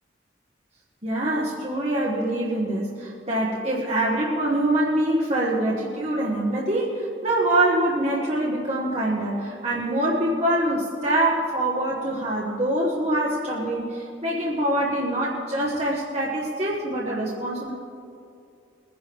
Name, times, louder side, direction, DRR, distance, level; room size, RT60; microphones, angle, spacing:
voice 1, 1.0-17.7, right 1 dB, 35° right, -5 dB, 1.4 m, -24 dB
21.5 x 10.5 x 3.5 m, 2.6 s
head